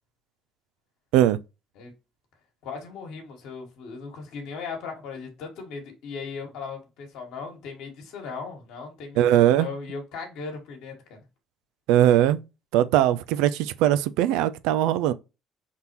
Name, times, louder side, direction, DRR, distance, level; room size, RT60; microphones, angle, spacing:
voice 1, 2.6-11.2, left 5 dB, 75° left, 1.4 m, -38 dB
voice 2, 9.2-9.7 11.9-12.4 12.7-15.1, right 12 dB, 75° right, 0.3 m, -20 dB
4.1 x 3.5 x 2.8 m
hypercardioid pair, 60°, 0 cm